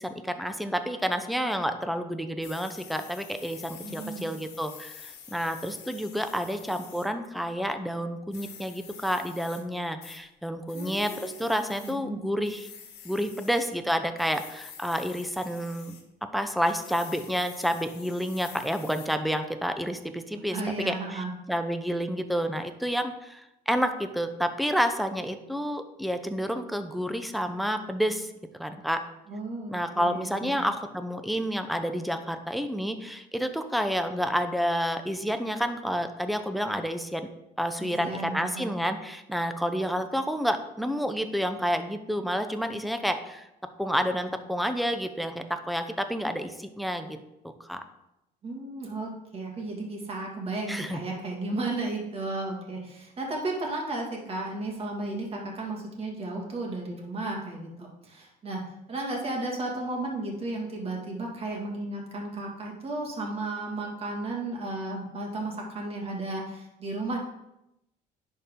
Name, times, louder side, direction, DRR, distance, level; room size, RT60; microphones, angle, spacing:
voice 1, 0.0-12.7 13.0-16.0 16.3-20.6 20.8-29.0 29.7-37.3 37.6-43.5 43.8-47.2 47.6-47.8 50.7-51.0, equal, ahead, 8 dB, 0.6 m, -29 dB
sound 1, 2.4-7.1 8.3-9.6 10.0-10.2 10.7-11.9 12.4-13.7 14.2-16.0 16.6-19.1, left 8 dB, 75° left, 1.3 m, -47 dB
voice 2, 3.8-4.3 10.7-11.4 11.8-12.3 20.5-21.3 29.3-30.7 37.8-38.7 48.4-58.6 58.9-67.2, right 2 dB, 35° right, -1 dB, 2.2 m, -34 dB
10.5 x 4.3 x 3.8 m, 0.87 s
cardioid pair, 110°, 17 cm